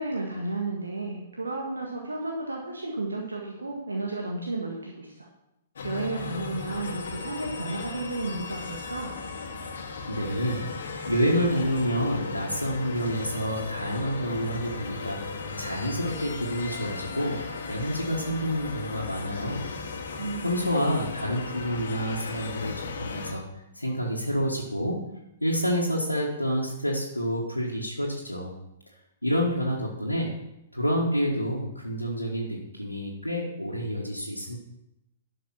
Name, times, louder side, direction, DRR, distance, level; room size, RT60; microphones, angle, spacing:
voice 1, 0.0-5.3 5.8-9.1 20.2-20.7, right 2 dB, 75° right, -1 dB, 1.7 m, -33 dB
sound 1, 5.8-23.3, left 4 dB, 60° left, 1.6 m, -36 dB
voice 2, 10.1-10.6 11.1-15.2 15.6-19.7 20.4-23.4 23.7-25.0 25.4-28.5 29.2-30.3 30.7-34.6, equal, 90° left, -4 dB, 1.6 m, -28 dB
11.5 x 6.5 x 5.9 m, 0.87 s
figure-of-eight pair, 110°, 0 cm